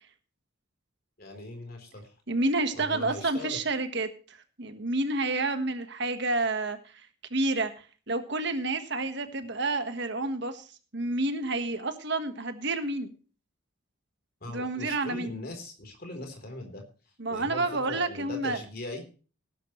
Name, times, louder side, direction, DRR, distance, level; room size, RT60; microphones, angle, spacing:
voice 1, 1.2-2.1 2.7-3.6 14.4-16.8 17.3-19.0, left 1 dB, 50° left, 5 dB, 3.8 m, -40 dB
voice 2, 2.3-10.7 10.9-13.1 14.5-15.3 17.2-18.6, right 2 dB, 55° right, 8 dB, 1.5 m, -30 dB
18.0 x 10.5 x 3.2 m, 0.37 s
head